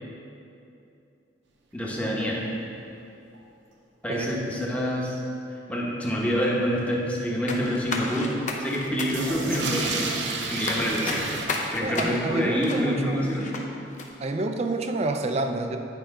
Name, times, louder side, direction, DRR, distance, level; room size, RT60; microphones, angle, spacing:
voice 1, 1.7-2.4 4.0-5.2 5.7-8.3 8.6-11.3 11.7-13.6, equal, 10° left, -4 dB, 1.0 m, -27 dB
sound 1, 2.0-2.1 2.3-2.4 2.6-2.7 3.3-3.4 9.0-11.5, right 3 dB, 90° right, 0.7 m, -30 dB
sound 2, 7.5-13.6 14.0-14.1, left 3 dB, 45° left, 0.6 m, -33 dB
voice 2, 11.8-13.3 14.2-15.8, right 2 dB, 35° right, 6 dB, 0.4 m, -28 dB
9.3 x 5.0 x 3.7 m, 2.7 s
head